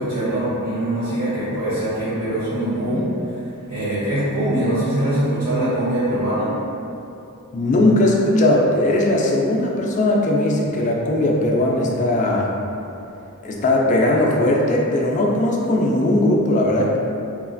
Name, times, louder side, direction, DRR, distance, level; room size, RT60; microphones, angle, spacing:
voice 1, 0.0-3.1 3.7-6.5, right 1 dB, 80° right, -13 dB, 1.2 m, -22 dB
voice 2, 7.5-12.5 13.4-17.0, left 1 dB, 35° left, -2 dB, 0.3 m, -18 dB
3.0 x 2.4 x 2.5 m, 2.7 s
head